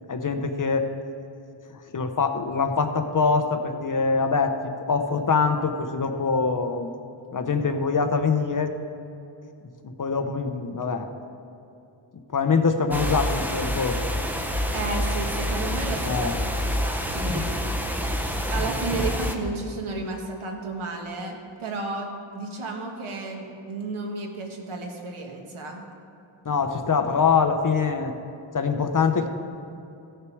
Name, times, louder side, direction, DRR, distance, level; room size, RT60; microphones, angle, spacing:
voice 1, 0.1-0.9 1.7-4.6 4.9-6.9 7.3-8.8 9.8-11.1 12.3-14.0 16.1-16.5 26.4-28.2 28.5-29.3, left 5 dB, 40° left, 7 dB, 0.8 m, -24 dB
sound 1, 12.9-19.4, equal, 5° right, 0.7 m, -27 dB
voice 2, 14.7-17.5 18.5-25.9, right 3 dB, 85° right, 2 dB, 1.6 m, -33 dB
16.0 x 6.6 x 4.6 m, 2.7 s
wide cardioid pair, 130°, 48 cm